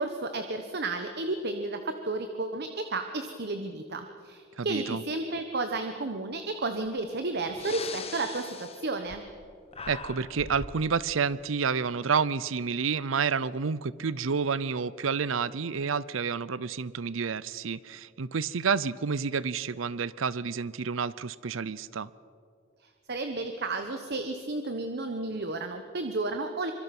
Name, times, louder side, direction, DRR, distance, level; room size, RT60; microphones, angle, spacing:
voice 1, 0.0-9.2 23.1-26.7, right 2 dB, 55° right, 7 dB, 1.2 m, -32 dB
voice 2, 4.6-5.0 9.9-22.1, right 5 dB, 85° right, 19 dB, 0.6 m, -29 dB
Breathing, 6.9-7.0 7.5-9.5 9.7-10.8, left 4 dB, 30° left, 1.4 m, -41 dB
25.0 x 23.5 x 6.1 m, 2.4 s
head